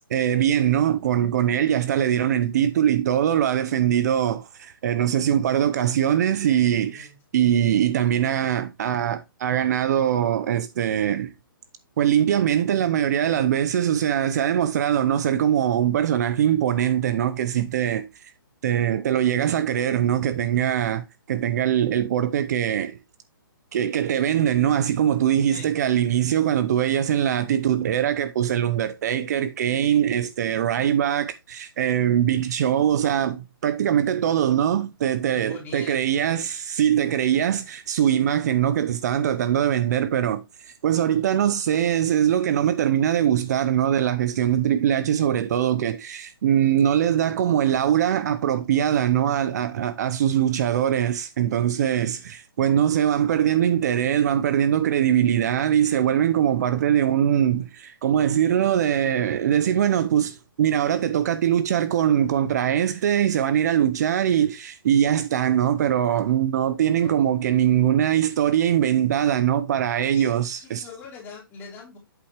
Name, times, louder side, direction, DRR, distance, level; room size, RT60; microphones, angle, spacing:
voice 1, 0.1-7.1 7.3-11.3 12.0-18.1 18.6-23.0 23.7-40.4 40.8-70.9, right 10 dB, 45° right, 0.7 m, -22 dB
voice 2, 6.8-7.2 25.5-25.7 35.3-36.1 67.0-67.1 70.1-72.0, left 4 dB, 20° left, 3.5 m, -42 dB
8.2 x 7.0 x 3.0 m
hypercardioid pair, 150°, 12 cm